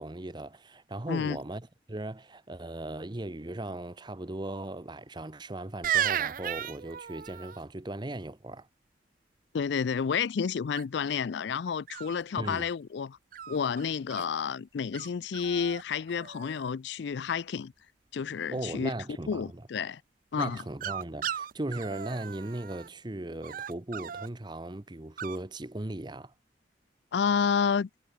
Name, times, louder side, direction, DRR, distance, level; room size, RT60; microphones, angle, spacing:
voice 1, 0.0-8.7 12.4-12.7 18.5-19.7 20.4-26.3, right 1 dB, 25° right, 0.8 m, -38 dB
sound 1, 5.8-7.6 10.7-11.2 11.9-12.7 13.3-14.3 14.9-15.1 15.3-15.8 16.1-16.7 20.4-22.9 23.4-24.3 25.2-25.4, right 10 dB, 45° right, 0.4 m, -35 dB
voice 2, 9.5-13.2 13.5-17.7 18.1-18.9 19.3-20.0 20.3-20.6 27.1-27.9, left 6 dB, 65° left, 0.4 m, -30 dB
head